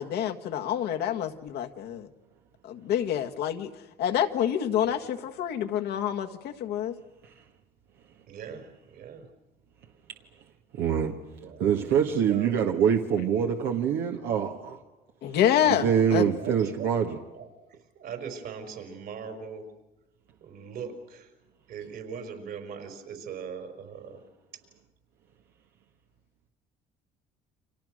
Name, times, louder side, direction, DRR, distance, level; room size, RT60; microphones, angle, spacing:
voice 1, 0.0-2.1 2.6-3.7 4.0-6.9 15.2-16.3, left 10 dB, 75° left, 1.7 m, -27 dB
voice 2, 8.3-9.3 11.3-12.5 16.4-19.6 20.4-21.3 21.7-24.2, right 6 dB, 70° right, 5.1 m, -40 dB
voice 3, 10.8-11.1 11.6-14.8 15.7-17.2, right 8 dB, 85° right, 1.7 m, -25 dB
29.5 x 25.0 x 6.5 m
cardioid pair, 110°, 17 cm